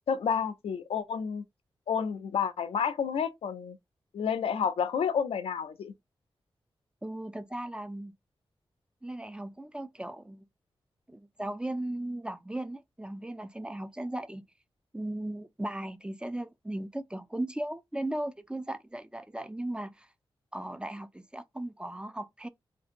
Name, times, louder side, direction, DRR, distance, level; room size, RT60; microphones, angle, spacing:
voice 1, 0.1-1.4 1.9-3.8 4.1-5.9, left 7 dB, 90° left, 0.4 m, -30 dB
voice 2, 7.0-8.1 9.0-10.4 11.1-14.4 14.9-20.1 20.5-22.5, right 1 dB, 10° right, 0.4 m, -37 dB
2.8 x 2.6 x 2.5 m
cardioid pair, 50°, 10 cm